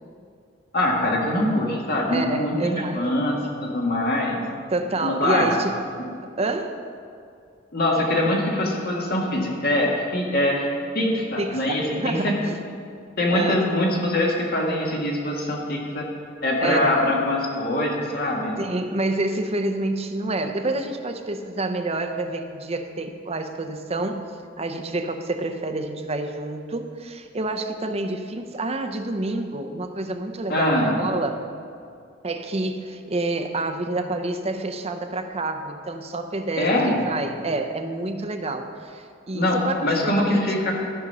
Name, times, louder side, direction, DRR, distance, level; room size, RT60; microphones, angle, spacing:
voice 1, 0.7-4.4 5.0-5.5 7.7-12.4 13.2-16.1 16.4-18.6 30.5-31.0 36.6-37.1 39.3-40.7, left 1 dB, 55° left, -2 dB, 1.8 m, -23 dB
voice 2, 2.1-3.1 4.7-5.7 6.4-6.8 11.4-12.6 13.3-13.7 16.6-17.0 18.6-31.4 32.2-40.5, right 2 dB, 35° right, 6 dB, 0.7 m, -28 dB
13.5 x 5.3 x 5.4 m, 2.3 s
head